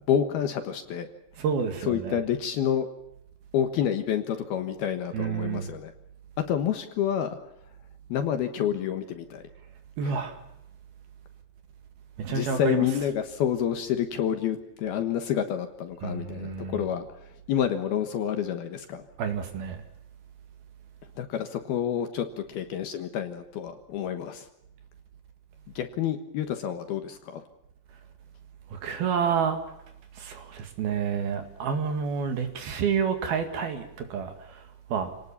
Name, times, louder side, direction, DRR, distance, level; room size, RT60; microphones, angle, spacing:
voice 1, 0.1-1.1 1.8-2.9 3.5-5.9 6.5-7.4 8.1-9.4 10.0-10.2 12.3-17.1 17.5-19.0 21.2-24.5 25.8-27.4, left 9 dB, 65° left, 7 dB, 2.9 m, -28 dB
voice 2, 1.4-2.2 5.1-5.7 10.0-10.4 12.2-12.9 16.0-16.9 19.2-19.8 28.7-29.6 30.2-34.6 34.9-35.1, right 6 dB, 60° right, 7 dB, 3.6 m, -29 dB
28.5 x 19.0 x 7.2 m, 0.82 s
omnidirectional pair, 5.4 m